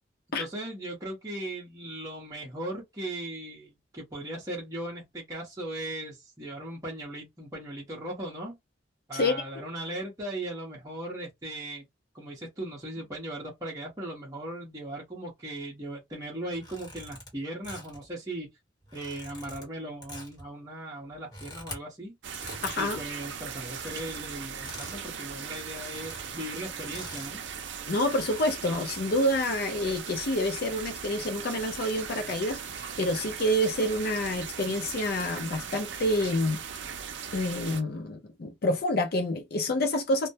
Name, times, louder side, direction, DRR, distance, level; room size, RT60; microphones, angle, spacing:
voice 1, 0.4-8.6 9.1-11.8 12.1-18.5 18.9-22.1 22.8-27.4, right 1 dB, 20° right, 0.7 m, -38 dB
voice 2, 9.1-9.7 22.6-23.0 27.9-36.6 37.3-40.3, left 1 dB, 55° left, 0.5 m, -28 dB
sound 1, 16.5-17.3 17.6-18.1 18.8-19.7 20.0-20.4 21.1-21.8 22.3-22.8 23.4-24.0 24.6-25.0 25.3-25.4 25.6-26.3 26.9-27.4 28.1-28.5, left 1 dB, 20° left, 1.1 m, -44 dB
sound 2, 22.2-37.8, right 7 dB, 65° right, 0.5 m, -39 dB
2.2 x 2.1 x 2.7 m
head